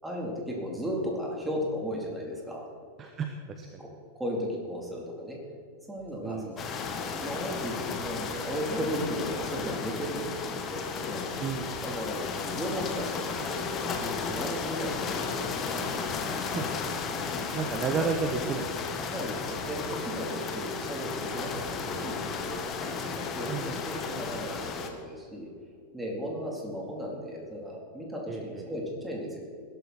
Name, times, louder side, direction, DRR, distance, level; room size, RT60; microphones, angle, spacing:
voice 1, 0.0-2.7 3.8-3.9 4.2-5.4 5.9-6.7 7.2-11.4 11.8-15.9 18.0-18.1 19.1-25.5 25.9-29.4, equal, 5° right, -1 dB, 4.1 m, -35 dB
voice 2, 3.0-3.8 6.2-6.5 11.4-11.7 16.4-19.3 23.5-23.8 28.3-28.6, right 5 dB, 25° right, 5 dB, 1.3 m, -33 dB
sound 1, 5.9-22.7, right 2 dB, 85° right, 3.6 m, -52 dB
sound 2, 6.6-24.9, left 5 dB, 30° left, 2.0 m, -34 dB
20.5 x 12.0 x 4.6 m, 2.2 s
figure-of-eight pair, 90°, 0 cm